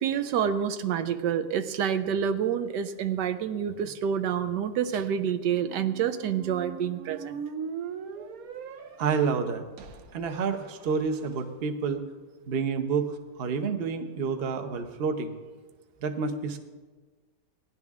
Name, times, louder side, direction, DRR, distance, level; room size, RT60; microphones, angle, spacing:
voice 1, 0.0-7.4 8.2-8.3, right 8 dB, 85° right, 10 dB, 1.3 m, -28 dB
sound 1, 5.5-11.4, right 6 dB, 65° right, 1.2 m, -41 dB
voice 2, 9.0-9.6 10.1-12.0 12.5-15.3 16.0-16.6, right 5 dB, 45° right, 7 dB, 0.9 m, -29 dB
17.5 x 11.0 x 3.6 m, 1.3 s
omnidirectional pair, 1.8 m